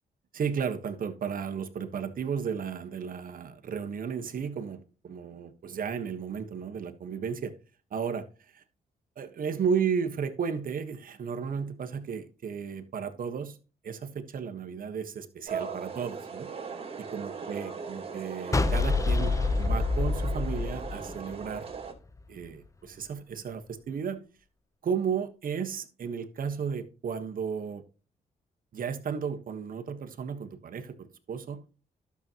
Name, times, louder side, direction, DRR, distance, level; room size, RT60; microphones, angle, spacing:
voice 1, 0.3-7.5 7.9-8.2 8.5-8.6 9.2-13.6 13.8-16.5 17.1-21.7 22.3-24.2 24.8-27.8 28.7-31.6, right 6 dB, 65° right, 1.4 m, -34 dB
sound 1, 15.5-21.9, right 6 dB, 40° right, 2.8 m, -39 dB
sound 2, 18.5-21.8, left 3 dB, 20° left, 0.7 m, -27 dB
12.0 x 7.1 x 3.0 m
cardioid pair, 85°, 16 cm